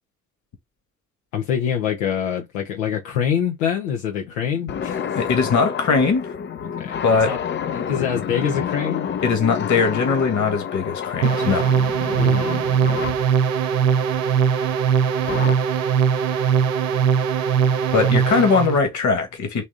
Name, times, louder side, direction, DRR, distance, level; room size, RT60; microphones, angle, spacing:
voice 1, 1.3-5.2 6.8-7.4 7.7-9.4 11.2-11.3 12.2-12.5, left 8 dB, 70° left, 0.9 m, -25 dB
sound 1, 4.7-13.3 15.3-15.5, left 8 dB, 30° left, 0.6 m, -29 dB
voice 2, 5.1-6.3 7.0-7.3 9.2-11.6 17.9-19.7, left 5 dB, 45° left, 1.6 m, -20 dB
sound 2, 11.2-18.8, right 7 dB, 75° right, 0.7 m, -20 dB
4.1 x 3.6 x 3.5 m
figure-of-eight pair, 45°, 40 cm